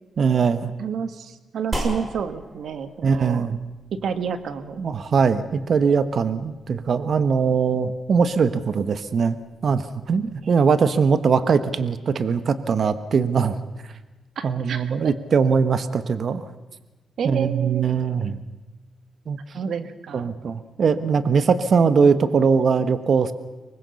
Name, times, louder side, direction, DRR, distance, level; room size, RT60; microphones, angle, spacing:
voice 1, 0.2-0.7 3.0-3.6 4.8-9.4 9.6-13.6 14.4-16.4 17.2-18.4 19.3-19.4 20.1-23.3, right 5 dB, 60° right, 12 dB, 1.2 m, -21 dB
voice 2, 0.8-3.5 3.9-4.8 10.4-10.6 14.4-15.1 17.2-18.0 19.5-20.3, right 7 dB, 75° right, 11 dB, 1.7 m, -30 dB
sound 1, 1.7-10.4, right 1 dB, 35° right, 4.9 m, -38 dB
24.5 x 20.0 x 7.1 m, 1.1 s
cardioid pair, 85°, 0 cm